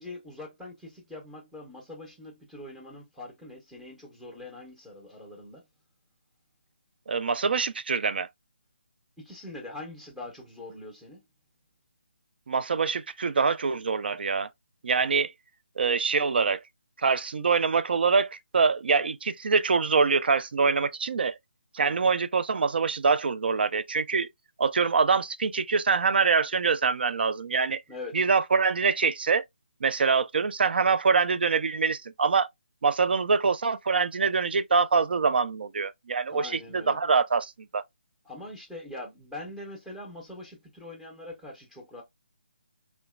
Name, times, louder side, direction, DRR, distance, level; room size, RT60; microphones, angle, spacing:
voice 1, 0.0-5.6 9.2-11.2 21.8-22.1 27.9-28.2 36.3-37.0 38.2-42.0, left 2 dB, ahead, 0.6 m, -43 dB
voice 2, 7.1-8.3 12.5-14.5 14.8-15.3 15.8-16.6 17.0-21.4 21.7-24.3 24.6-27.8 28.1-29.4 29.8-32.5 32.8-37.8, right 5 dB, 65° right, 0.3 m, -24 dB
2.8 x 2.2 x 2.3 m
figure-of-eight pair, 155°, 6 cm